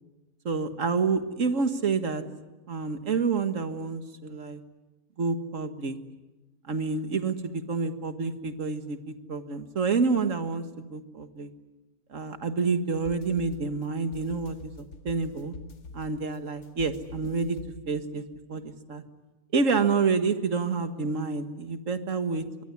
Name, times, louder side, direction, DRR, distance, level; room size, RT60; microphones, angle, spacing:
voice 1, 0.5-2.2 2.7-4.6 5.2-6.0 6.6-10.7 10.9-11.5 12.1-15.6 15.9-17.6 17.9-18.2 18.5-19.0 19.5-22.6, right 4 dB, 55° right, 9 dB, 1.9 m, -28 dB
sound 1, 12.9-18.2, left 3 dB, 90° left, 2.5 m, -46 dB
25.0 x 22.0 x 9.7 m, 1.1 s
omnidirectional pair, 1.7 m